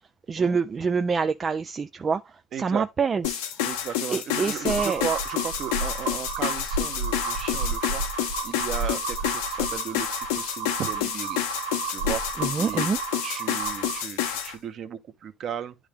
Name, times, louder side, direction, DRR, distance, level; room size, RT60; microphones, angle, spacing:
voice 1, 0.3-2.2 2.6-3.4 4.1-5.0 12.4-13.0, right 5 dB, 25° right, 0.3 m, -26 dB
voice 2, 2.5-2.8 3.6-11.4 11.9-12.2 12.6-12.9 13.2-15.8, right 8 dB, 40° right, 1.0 m, -35 dB
sound 1, 3.2-14.5, left 10 dB, 85° left, 1.3 m, -29 dB
sound 2, 4.7-14.0, right 5 dB, 90° right, 1.2 m, -32 dB
10.5 x 3.5 x 3.4 m
supercardioid pair, 125°, 0 cm